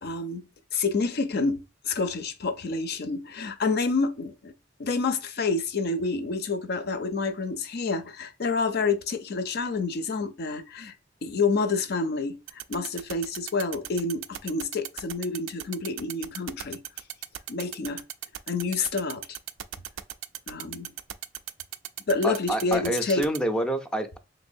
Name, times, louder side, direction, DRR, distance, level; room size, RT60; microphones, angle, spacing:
voice 1, 0.0-0.4 0.7-4.5 4.8-10.9 11.2-16.8 17.5-18.0 18.5-19.2 20.5-20.9 22.1-23.2, left 4 dB, 55° left, 0.5 m, -28 dB
sound 1, 12.5-23.4, right 12 dB, 80° right, 0.3 m, -36 dB
voice 2, 22.2-24.2, right 1 dB, 5° left, 0.4 m, -28 dB
3.3 x 3.1 x 2.6 m
head